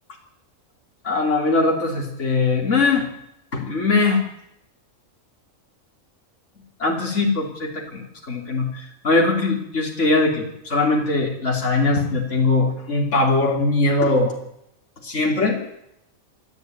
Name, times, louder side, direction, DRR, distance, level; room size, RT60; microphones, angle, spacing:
voice 1, 1.0-3.1 3.5-4.3 6.8-14.4 15.0-15.6, left 3 dB, 60° left, 0 dB, 3.6 m, -21 dB
27.5 x 12.0 x 9.6 m, 0.82 s
omnidirectional pair, 1.4 m